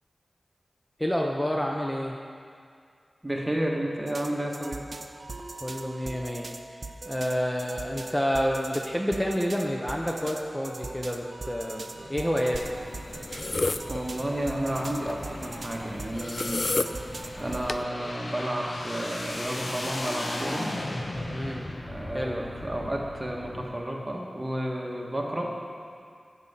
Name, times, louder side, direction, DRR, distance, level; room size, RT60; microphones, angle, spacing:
voice 1, 1.0-2.2 5.6-6.5 7.1-12.6 21.3-21.6 22.1-22.4, equal, 10° left, 0 dB, 0.8 m, -29 dB
voice 2, 3.2-4.9 13.9-16.7 17.4-20.7 21.8-25.5, right 1 dB, 20° right, -1 dB, 1.4 m, -31 dB
sound 1, 4.1-18.5, right 2 dB, 60° right, 0.6 m, -41 dB
sound 2, 11.9-23.6, left 1 dB, 70° left, 1.1 m, -38 dB
sound 3, 12.5-17.8, left 2 dB, 50° left, 0.4 m, -33 dB
10.5 x 5.5 x 7.4 m, 2.2 s
wide cardioid pair, 65°, 0 cm